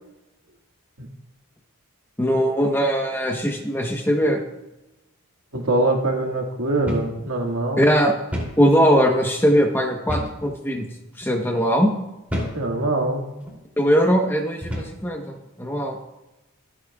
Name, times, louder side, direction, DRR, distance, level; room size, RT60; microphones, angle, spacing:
voice 1, 2.2-4.4 7.8-8.1 8.6-10.9 11.2-11.9 13.8-16.0, equal, 10° left, 2 dB, 1.1 m, -20 dB
voice 2, 5.5-7.9 12.5-13.3, right 2 dB, 80° right, 1 dB, 2.1 m, -23 dB
sound 1, 6.9-7.2 7.5-7.6 8.3-8.6 10.1-10.4 11.1-11.3 12.3-12.6 13.4-13.6 14.6-15.0, equal, 5° right, 3.0 m, -29 dB
25.0 x 8.5 x 2.4 m, 0.96 s
head